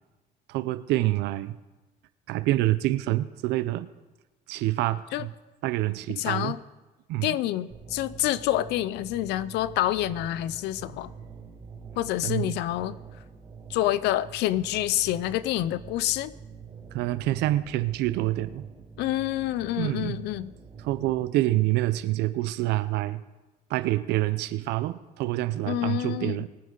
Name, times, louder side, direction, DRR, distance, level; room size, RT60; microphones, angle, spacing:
voice 1, 0.5-1.6 2.3-3.9 4.5-5.3 5.6-6.5 7.1-7.4 12.2-12.6 16.9-18.6 19.8-20.2 20.8-23.2 23.7-26.5, right 16 dB, 90° right, 0.7 m, -27 dB
voice 2, 6.2-6.6 7.2-11.1 12.0-13.0 13.7-16.3 19.0-20.5 25.7-26.4, left 14 dB, 85° left, 0.6 m, -27 dB
sound 1, 7.7-21.3, right 6 dB, 30° right, 3.5 m, -46 dB
21.0 x 9.4 x 4.0 m
cardioid pair, 110°, 17 cm